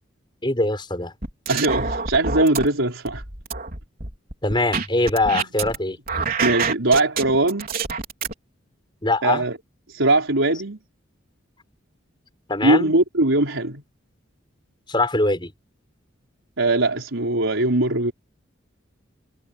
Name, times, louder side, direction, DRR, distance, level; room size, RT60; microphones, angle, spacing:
voice 1, 0.4-1.1 4.4-6.0 9.0-9.4 12.5-12.9 14.9-15.5, left 2 dB, 25° left, 5.2 m, -22 dB
sound 1, 1.2-2.7 3.1-5.8 6.1-8.3, right 5 dB, 45° right, 4.4 m, -26 dB
voice 2, 1.5-3.2 6.4-7.7 9.2-9.6 9.9-10.8 12.6-13.8 16.6-18.1, right 2 dB, 80° right, 4.2 m, -20 dB
head